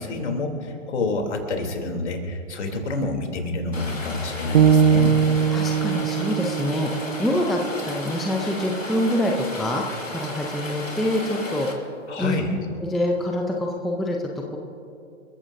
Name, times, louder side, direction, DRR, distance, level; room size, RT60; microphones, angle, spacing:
voice 1, 0.0-5.2 12.1-12.5, left 2 dB, 65° left, 3 dB, 3.2 m, -28 dB
Rain, 3.7-11.7, left 2 dB, 90° left, 3.3 m, -34 dB
sound 1, 4.5-8.7, right 7 dB, 55° right, 0.8 m, -22 dB
voice 2, 5.5-7.6 7.8-11.8 12.2-12.4 12.8-14.2 14.5-14.6, left 1 dB, ahead, 1 dB, 0.5 m, -25 dB
29.0 x 14.5 x 2.7 m, 2.6 s
figure-of-eight pair, 120°, 37 cm